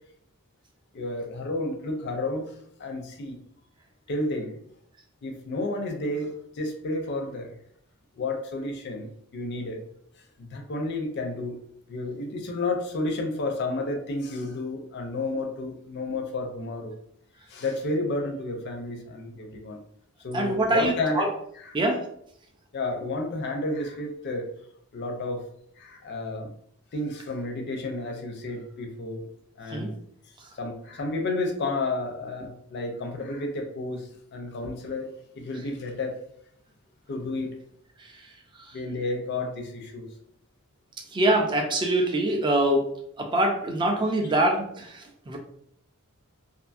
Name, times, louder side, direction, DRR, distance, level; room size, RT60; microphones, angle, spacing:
voice 1, 0.9-3.4 4.1-4.5 5.2-7.6 8.1-9.8 10.4-11.6 11.9-16.9 17.5-19.8 20.2-21.3 21.5-21.8 22.7-24.5 24.9-25.5 25.8-26.5 26.9-29.2 29.6-29.9 30.5-36.2 37.1-37.5 38.7-40.1, left 2 dB, 50° left, 3 dB, 0.4 m, -31 dB
voice 2, 20.3-21.3 21.7-22.0 29.7-29.9 41.1-42.9 43.2-45.4, right 1 dB, 20° right, 2 dB, 0.4 m, -24 dB
2.5 x 2.5 x 2.3 m, 0.70 s
head